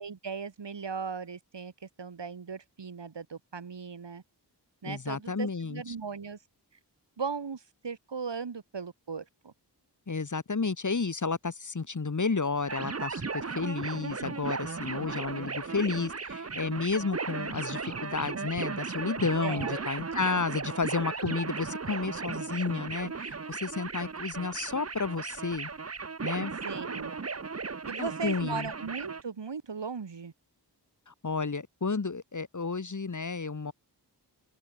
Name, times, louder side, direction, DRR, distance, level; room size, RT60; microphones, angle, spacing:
voice 1, 0.0-1.7 2.0-4.2 4.8-6.4 7.2-9.5 19.4-19.8 20.1-20.2 26.6-27.2 27.9-30.3, right 5 dB, 80° right, 4.5 m, -37 dB
voice 2, 4.8-6.0 10.1-25.7 26.2-26.5 28.0-28.7 31.1-33.7, left 4 dB, 45° left, 1.8 m, -32 dB
sound 1, 12.7-29.2, right 4 dB, 35° right, 1.1 m, -36 dB
open air
cardioid pair, 45°, 42 cm